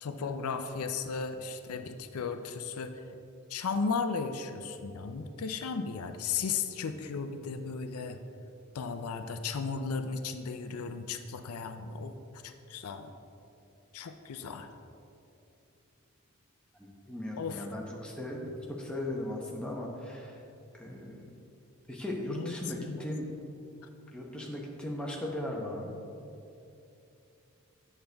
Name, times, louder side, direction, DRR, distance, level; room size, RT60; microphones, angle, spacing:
voice 1, 0.0-3.0 3.5-8.2 8.7-13.1 13.9-14.7 17.4-17.7 22.3-23.4, left 5 dB, 80° left, 8 dB, 0.5 m, -35 dB
voice 2, 16.7-20.4 20.7-21.3 21.9-23.2 24.1-25.9, left 1 dB, 5° left, -2 dB, 0.8 m, -38 dB
8.8 x 6.6 x 3.4 m, 2.7 s
head